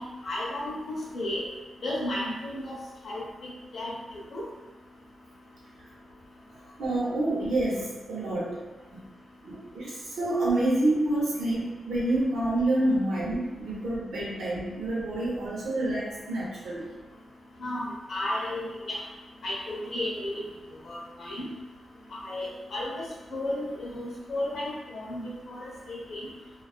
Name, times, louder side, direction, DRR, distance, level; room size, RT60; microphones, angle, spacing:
voice 1, 0.0-1.4 1.8-2.8 3.0-3.9 4.3-4.4 17.6-19.0 19.4-20.4 20.9-21.4 22.2-26.2, left 1 dB, 65° left, -4 dB, 0.8 m, -33 dB
voice 2, 6.5-8.6 8.9-9.1 9.4-16.9, right 1 dB, 90° right, -6 dB, 0.9 m, -28 dB
2.4 x 2.2 x 2.3 m, 1.2 s
cardioid pair, 95°, 0 cm